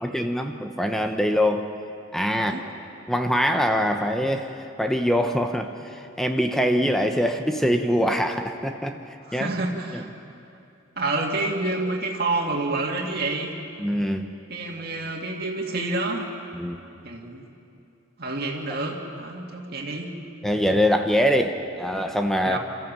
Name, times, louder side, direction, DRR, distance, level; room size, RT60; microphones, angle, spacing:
voice 1, 0.0-1.7 2.1-2.6 3.1-9.0 9.3-9.5 9.9-10.0 13.8-14.3 16.5-16.8 20.4-22.6, equal, ahead, 5 dB, 0.8 m, -23 dB
voice 2, 2.3-2.7 9.3-10.1 11.0-13.5 14.5-16.3 17.0-17.5 18.2-20.1 22.4-22.6, right 2 dB, 50° right, 0 dB, 2.3 m, -28 dB
26.5 x 14.0 x 7.5 m, 2.6 s
head